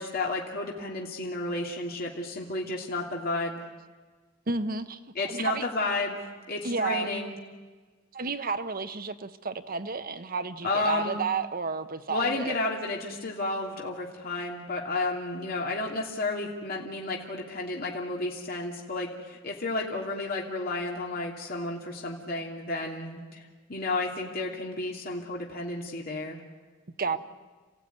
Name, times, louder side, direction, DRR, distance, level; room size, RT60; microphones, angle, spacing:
voice 1, 0.0-3.7 5.1-7.3 10.6-11.2 12.1-23.4 23.7-26.4 27.1-27.2, left 2 dB, 50° left, -1 dB, 2.9 m, -32 dB
voice 2, 4.5-5.6 6.6-7.2 8.1-12.6 27.0-27.2, right 4 dB, 45° right, 10 dB, 1.0 m, -31 dB
29.0 x 16.0 x 9.5 m, 1.4 s
head